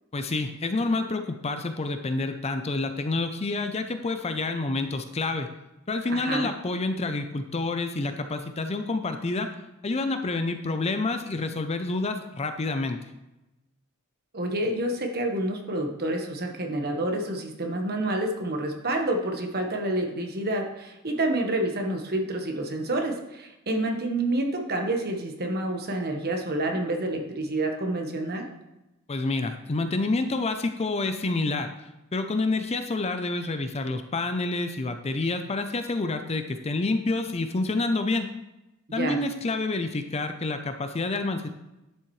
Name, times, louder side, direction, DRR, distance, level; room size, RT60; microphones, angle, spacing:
voice 1, 0.1-5.5 5.9-9.5 9.8-13.0 29.1-31.7 32.1-38.3 38.9-41.5, left 3 dB, 30° left, 8 dB, 0.5 m, -28 dB
voice 2, 6.1-6.5 14.3-28.5 38.9-39.2, right 1 dB, 45° right, 3 dB, 1.3 m, -28 dB
11.0 x 7.2 x 3.2 m, 0.97 s
head